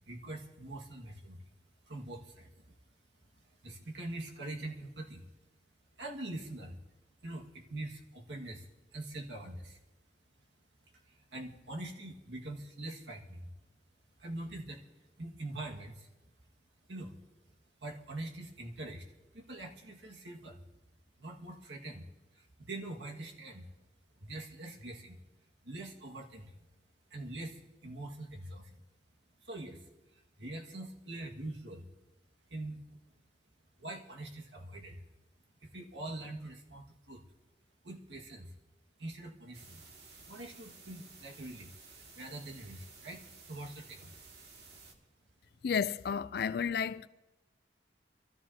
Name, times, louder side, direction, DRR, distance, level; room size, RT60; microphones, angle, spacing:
voice 1, 0.0-1.4 1.9-2.7 3.4-5.3 6.0-6.8 7.2-9.8 11.1-13.5 14.2-14.9 15.2-16.1 16.9-17.1 17.8-19.1 19.3-20.6 21.2-22.1 22.3-23.7 24.2-25.2 25.6-26.6 27.1-28.8 29.4-29.8 30.1-31.9 32.5-32.8 33.8-35.0 35.6-37.2 37.8-38.5 39.0-39.8 40.3-44.2, right 2 dB, 80° right, 1.8 m, -44 dB
sound 1, 39.5-44.9, right 4 dB, 65° right, 2.0 m, -54 dB
voice 2, 45.6-47.1, left 6 dB, 60° left, 0.4 m, -32 dB
26.0 x 13.0 x 2.8 m
head